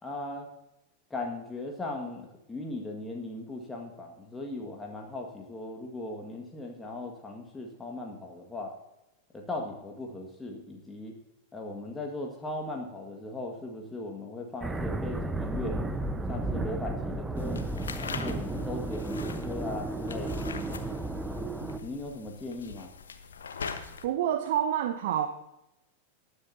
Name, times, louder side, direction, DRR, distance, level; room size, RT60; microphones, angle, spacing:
voice 1, 0.0-0.5 1.1-8.7 9.3-11.1 11.5-15.9 16.3-17.6 18.0-20.4 21.8-22.9, left 2 dB, 10° left, 1 dB, 1.7 m, -38 dB
sound 1, 14.6-21.8, right 2 dB, 10° right, 0.9 m, -33 dB
sound 2, 17.4-24.1, left 6 dB, 70° left, 1.1 m, -42 dB
voice 2, 24.0-25.3, right 10 dB, 55° right, 9 dB, 0.8 m, -27 dB
20.0 x 9.6 x 2.8 m, 0.92 s
figure-of-eight pair, 90°, 0 cm